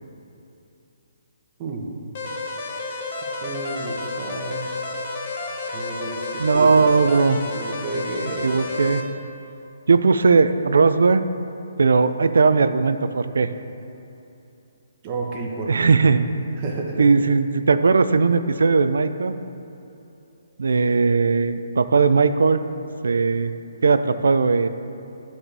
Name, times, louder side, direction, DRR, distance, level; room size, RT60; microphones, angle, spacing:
sound 1, 2.2-9.0, left 3 dB, 40° left, 0.8 m, -31 dB
voice 1, 3.4-4.7 5.7-6.2 6.5-7.0 7.5-8.5 15.0-15.9 16.6-17.1, right 3 dB, 25° right, -1 dB, 0.9 m, -31 dB
voice 2, 6.4-7.4 8.2-9.0 9.9-11.2 11.8-13.5 15.7-16.2 17.0-19.4 20.6-22.6 23.0-23.5 23.8-24.7, right 4 dB, 85° right, 11 dB, 0.4 m, -18 dB
11.0 x 4.3 x 3.3 m, 2.9 s
hypercardioid pair, 165°, 0 cm